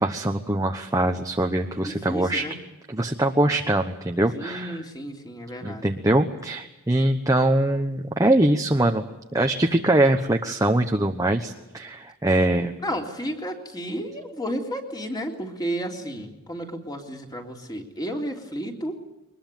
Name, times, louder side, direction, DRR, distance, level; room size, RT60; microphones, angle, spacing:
voice 1, 0.0-2.4 2.9-4.8 5.6-9.0 9.3-12.7, right 1 dB, 15° right, 4 dB, 1.1 m, -22 dB
voice 2, 1.8-2.6 4.3-5.9 12.8-19.0, equal, 20° left, 2 dB, 3.4 m, -32 dB
23.0 x 21.0 x 9.2 m, 0.99 s
head